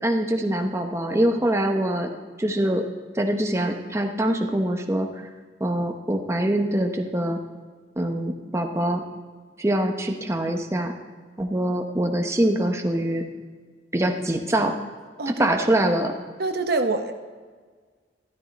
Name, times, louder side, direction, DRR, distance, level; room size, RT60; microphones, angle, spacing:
voice 1, 0.0-2.1 2.4-2.8 3.1-5.1 5.6-7.4 8.0-9.0 9.6-10.9 11.4-13.2 13.9-14.7 15.3-16.1, right 1 dB, 15° right, 4 dB, 0.8 m, -24 dB
voice 2, 15.2-15.9 16.4-17.1, right 3 dB, 55° right, 6 dB, 0.8 m, -26 dB
13.5 x 13.0 x 4.1 m, 1.5 s
head